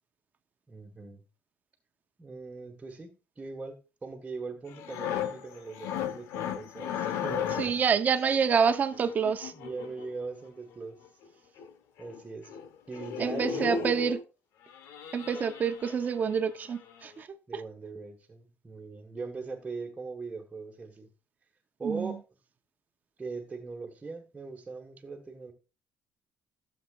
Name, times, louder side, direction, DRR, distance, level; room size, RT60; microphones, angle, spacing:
voice 1, 0.7-1.2 2.2-7.8 9.5-11.2 12.0-12.6 12.9-13.9 17.5-21.1 21.8-22.2 23.2-25.5, right 4 dB, 15° right, 1.6 m, -40 dB
sound 1, 4.7-7.9 8.9-10.1 11.2-11.3 11.6-11.7 12.0-12.2 12.5-12.7 12.9-14.2 14.7-16.3 16.7-16.9, left 8 dB, 85° left, 1.2 m, -35 dB
voice 2, 7.6-9.5 13.2-14.2 15.1-17.6 21.8-22.1, right 6 dB, 35° right, 0.9 m, -27 dB
15.5 x 7.3 x 2.5 m
cardioid pair, 150°, 5 cm